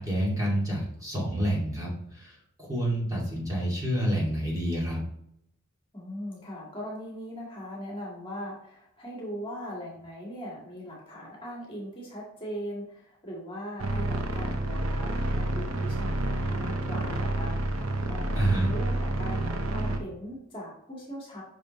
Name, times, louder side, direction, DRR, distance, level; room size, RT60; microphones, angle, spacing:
voice 1, 0.0-5.0 18.3-18.7, equal, 15° right, -5 dB, 2.4 m, -29 dB
voice 2, 5.9-21.4, equal, 25° left, -4 dB, 2.0 m, -40 dB
sound 1, 13.8-20.0, right 1 dB, 70° right, 0.9 m, -29 dB
6.8 x 6.0 x 3.1 m, 0.74 s
head